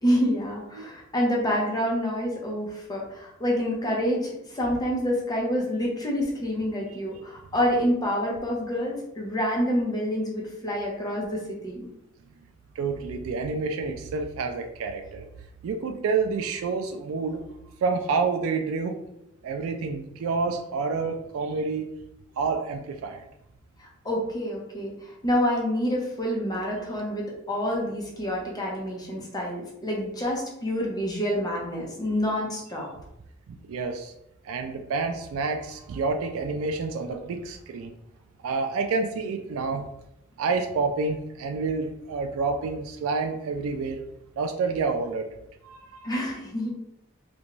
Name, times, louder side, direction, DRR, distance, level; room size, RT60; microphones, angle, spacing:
voice 1, 0.0-11.9 23.8-32.9 46.0-46.7, equal, 20° left, -2 dB, 0.6 m, -27 dB
voice 2, 12.8-15.3 15.6-17.4 17.8-19.0 19.4-21.9 22.4-23.3 33.5-34.1 34.4-38.0 38.4-39.9 40.4-44.0 44.4-45.3 45.6-45.8, right 4 dB, 80° right, 6 dB, 0.3 m, -28 dB
2.5 x 2.2 x 2.9 m, 0.83 s
head